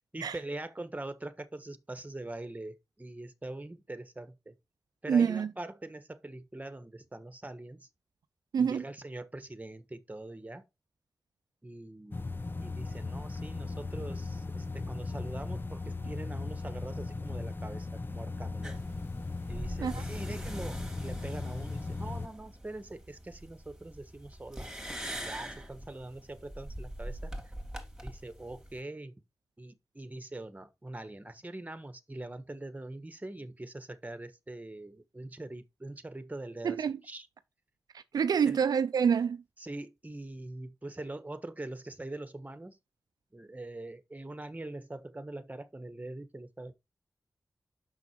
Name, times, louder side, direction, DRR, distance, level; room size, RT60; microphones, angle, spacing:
voice 1, 0.0-4.5 5.0-7.9 8.6-10.6 11.6-12.3 12.6-18.7 19.5-24.7 25.1-27.3 28.0-29.1 29.6-37.3 38.4-38.6 39.6-42.8 43.3-46.7, right 2 dB, 25° right, 1.3 m, -43 dB
voice 2, 5.1-5.5 8.5-8.8 19.8-20.0 36.6-37.0 38.1-39.4, right 7 dB, 85° right, 0.4 m, -26 dB
sound 1, 12.1-22.3, left 3 dB, 35° left, 0.7 m, -37 dB
sound 2, 18.6-28.8, right 1 dB, 10° right, 2.9 m, -43 dB
6.0 x 5.9 x 4.6 m
cardioid pair, 45°, 7 cm